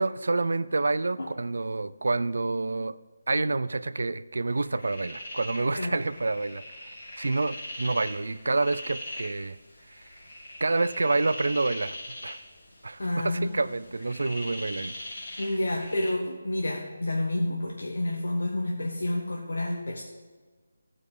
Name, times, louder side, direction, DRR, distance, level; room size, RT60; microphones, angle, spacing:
voice 1, 0.0-3.0 3.3-9.6 9.9-10.1 10.6-12.0 12.2-12.4 12.8-14.9, right 3 dB, 75° right, 0.4 m, -28 dB
sound 1, 4.5-16.1, left 1 dB, 45° left, 2.7 m, -41 dB
voice 2, 13.0-13.6 15.4-20.0, left 1 dB, 85° left, 1.4 m, -29 dB
14.5 x 4.9 x 5.4 m
hypercardioid pair, 175°, 0 cm